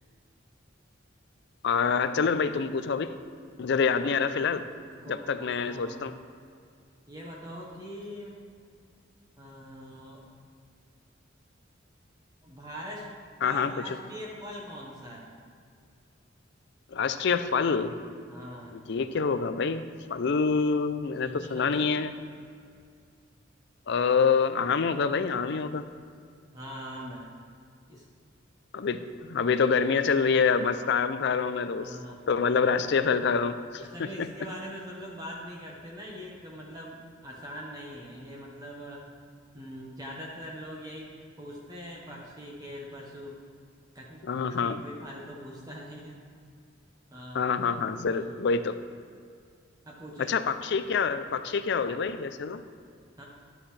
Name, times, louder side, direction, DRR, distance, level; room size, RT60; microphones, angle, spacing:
voice 1, 1.6-3.2 3.6-4.6 5.1-6.1 13.4-13.7 16.9-18.0 18.7-19.8 20.1-22.1 23.9-25.9 28.7-32.0 32.3-33.8 34.2-34.3 44.2-44.8 47.3-48.8 50.2-52.6, left 5 dB, 60° left, 11 dB, 0.5 m, -26 dB
voice 2, 4.8-6.1 7.1-8.4 9.4-10.3 12.4-13.1 13.4-15.3 18.3-18.7 21.2-21.9 26.5-27.3 27.9-28.0 31.8-32.2 33.8-39.0 39.5-43.4 43.9-46.2 47.1-47.4 48.1-48.4 49.8-50.8 53.2-53.3, equal, 20° right, -3 dB, 1.2 m, -42 dB
11.5 x 8.6 x 3.3 m, 2.2 s
head